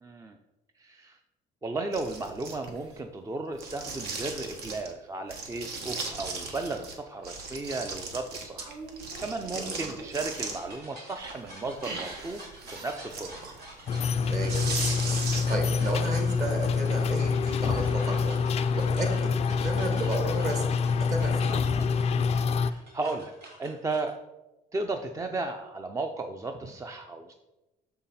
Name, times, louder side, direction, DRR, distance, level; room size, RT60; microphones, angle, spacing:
voice 1, 0.0-0.4 0.8-1.2 1.6-8.8 9.2-12.4 12.7-13.4 21.5-21.9 22.4-23.3 23.6-24.2 24.7-27.3, right 3 dB, 20° right, 5 dB, 0.5 m, -35 dB
sound 1, 1.9-3.0 3.6-4.9 5.3-6.9 7.2-10.8 11.2-15.7, right 4 dB, 70° right, 1.3 m, -38 dB
sound 2, 6.4-6.7 8.6-24.1, right 1 dB, 85° right, 2.5 m, -48 dB
sound 3, 13.9-22.7, left 5 dB, 40° left, 0.4 m, -26 dB
voice 2, 14.3-14.6 15.3-18.3 18.7-20.8 21.1-21.5, right 2 dB, 45° right, 3 dB, 1.9 m, -33 dB
6.3 x 5.7 x 4.2 m, 1.0 s
cardioid pair, 110°, 17 cm